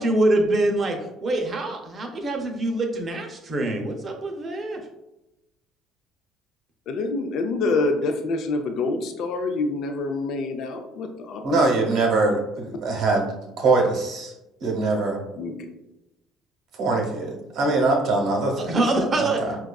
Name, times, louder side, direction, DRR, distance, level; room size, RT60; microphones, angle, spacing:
voice 1, 0.0-1.0 1.2-4.8 18.6-19.4, right 2 dB, 35° right, 2 dB, 0.6 m, -24 dB
voice 2, 6.9-11.4 11.7-11.9 15.4-15.5, left 3 dB, 65° left, 5 dB, 0.4 m, -26 dB
voice 3, 11.4-13.3 13.6-14.3 14.6-15.2 16.7-18.7 19.1-19.6, right 3 dB, 65° right, 0 dB, 0.9 m, -23 dB
4.6 x 2.3 x 2.2 m, 0.93 s
supercardioid pair, 100°, 0 cm